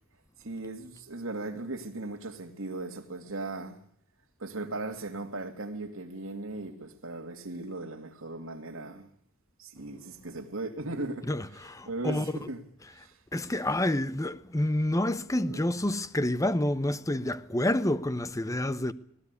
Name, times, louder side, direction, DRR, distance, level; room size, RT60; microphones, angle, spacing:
voice 1, 0.4-3.8 4.4-9.1 9.6-11.3 11.9-12.6 12.9-13.2 15.4-15.6, right 2 dB, 75° right, 2.5 m, -37 dB
voice 2, 11.3-12.5 13.3-18.9, left 1 dB, 15° left, 0.8 m, -28 dB
18.5 x 18.0 x 8.3 m
head